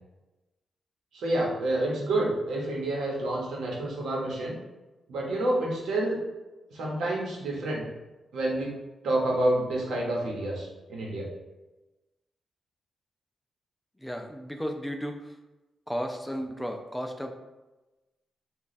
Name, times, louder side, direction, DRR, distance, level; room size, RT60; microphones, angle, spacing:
voice 1, 1.1-4.5 5.1-6.2 6.7-7.8 8.3-8.7 9.0-11.3, right 1 dB, 90° right, -2 dB, 0.9 m, -28 dB
voice 2, 14.0-15.3 15.9-17.3, equal, 5° left, 4 dB, 0.3 m, -34 dB
3.1 x 2.3 x 4.0 m, 1.1 s
cardioid pair, 120°, 0 cm